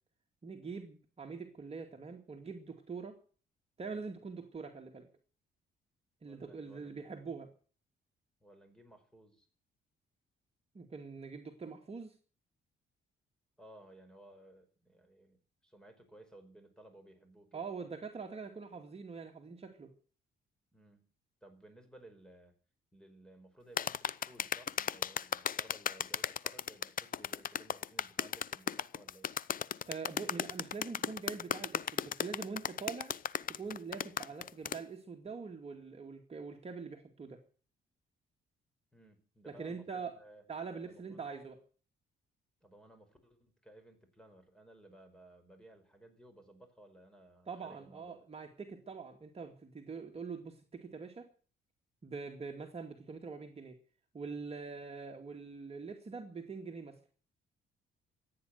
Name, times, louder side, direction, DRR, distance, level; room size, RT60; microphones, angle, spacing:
voice 1, 0.4-3.2 3.8-5.1 6.2-7.5 10.7-12.1 17.5-19.9 29.9-33.1 33.5-37.4 39.5-40.1 40.5-41.6 47.5-51.3 52.0-53.8 54.1-57.0, right 5 dB, 30° right, 2 dB, 2.2 m, -44 dB
voice 2, 6.2-7.0 8.4-9.5 13.6-17.6 20.7-21.0 21.4-22.5 22.9-29.3 38.9-40.4 40.8-41.3 42.6-48.2, right 1 dB, 5° left, 7 dB, 5.1 m, -58 dB
sound 1, 23.8-34.8, left 8 dB, 45° left, 0.6 m, -35 dB
15.0 x 9.2 x 9.2 m, 0.43 s
cardioid pair, 90°, 20 cm